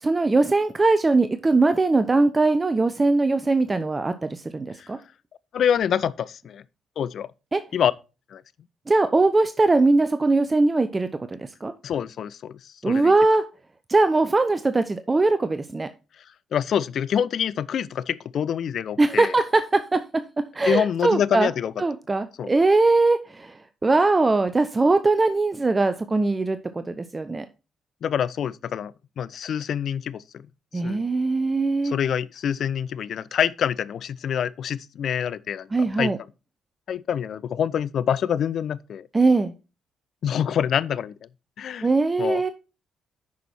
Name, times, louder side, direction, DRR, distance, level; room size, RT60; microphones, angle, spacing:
voice 1, 0.0-5.0 7.5-7.6 8.9-11.7 12.8-13.4 13.9-15.9 19.0-21.5 21.8-23.6 23.8-27.5 30.7-31.9 35.7-36.2 39.1-39.5 41.8-42.5, right 3 dB, 25° right, 0.6 m, -21 dB
voice 2, 5.5-6.6 7.0-7.3 7.7-7.9 8.3-8.4 11.8-13.1 16.5-19.3 20.6-21.7 22.4-22.5 28.0-30.5 30.8-31.0 31.8-36.1 36.9-39.1 40.2-41.1 41.6-41.9 42.2-42.4, left 8 dB, 55° left, 0.3 m, -26 dB
8.4 x 6.0 x 4.3 m
figure-of-eight pair, 40°, 0 cm